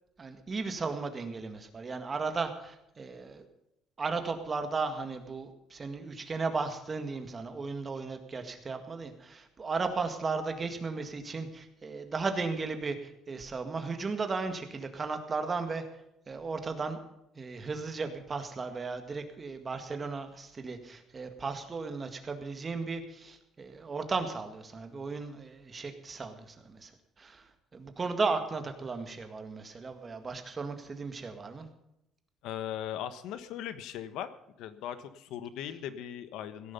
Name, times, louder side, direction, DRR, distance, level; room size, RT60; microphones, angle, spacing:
voice 1, 0.2-3.4 4.0-15.8 16.3-17.0 17.4-26.9 27.2-27.5 27.7-31.7, right 4 dB, 25° right, 7 dB, 1.9 m, -35 dB
voice 2, 32.4-34.3 34.6-36.7, left 10 dB, 80° left, 12 dB, 1.3 m, -39 dB
17.5 x 11.0 x 5.5 m, 0.83 s
cardioid pair, 150°, 0 cm